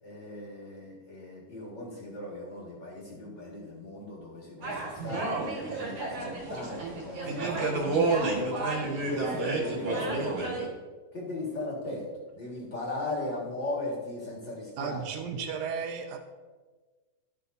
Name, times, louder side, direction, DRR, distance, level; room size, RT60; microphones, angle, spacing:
voice 1, 0.0-5.4 5.7-8.7 9.1-10.6 11.1-12.1 12.3-15.0, left 2 dB, 40° left, -4 dB, 1.8 m, -37 dB
sound 1, 4.6-10.7, right 3 dB, 55° right, 2.3 m, -30 dB
voice 2, 14.8-16.2, right 6 dB, 80° right, 5 dB, 1.8 m, -34 dB
13.0 x 6.7 x 2.6 m, 1.3 s
omnidirectional pair, 4.1 m